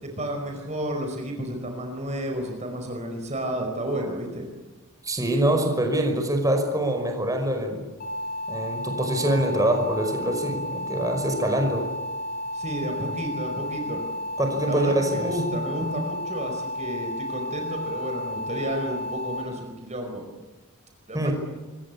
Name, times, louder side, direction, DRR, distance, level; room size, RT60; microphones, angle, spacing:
voice 1, 0.0-4.5 12.5-14.0 14.6-20.2 21.1-21.3, right 1 dB, 30° right, 3 dB, 4.9 m, -31 dB
voice 2, 5.0-7.8 8.5-11.9 14.4-15.3 21.1-21.3, right 1 dB, 15° right, 4 dB, 5.4 m, -24 dB
sound 1, 8.0-19.4, left 1 dB, 40° left, 6.3 m, -32 dB
26.5 x 24.0 x 8.5 m, 1.2 s
head